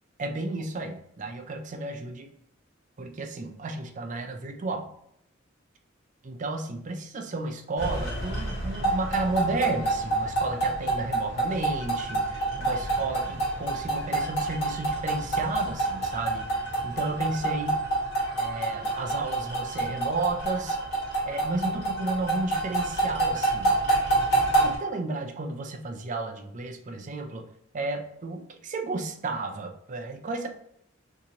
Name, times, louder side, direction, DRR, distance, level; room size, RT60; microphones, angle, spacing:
voice 1, 0.2-2.3 3.0-4.9 6.2-17.9 18.4-20.8 21.2-23.7 24.6-27.5 27.7-30.5, right 2 dB, 40° right, 4 dB, 0.4 m, -33 dB
sound 1, 7.8-24.8, right 2 dB, 55° left, 1.5 m, -28 dB
2.8 x 2.6 x 3.8 m, 0.73 s
head